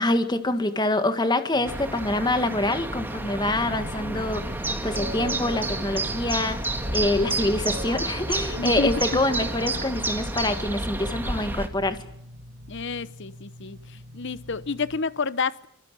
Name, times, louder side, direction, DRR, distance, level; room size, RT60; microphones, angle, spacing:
voice 1, 0.0-12.0, left 2 dB, 20° left, 1.8 m, -26 dB
sound 1, 1.5-15.0, equal, 70° right, 4.2 m, -45 dB
sound 2, 1.6-11.7, right 2 dB, 10° right, 2.0 m, -30 dB
Boat Water vehicle, 3.2-12.0, right 1 dB, 45° right, 1.7 m, -39 dB
voice 2, 8.6-8.9 12.7-15.7, left 4 dB, 55° left, 0.9 m, -30 dB
25.0 x 24.0 x 7.6 m
head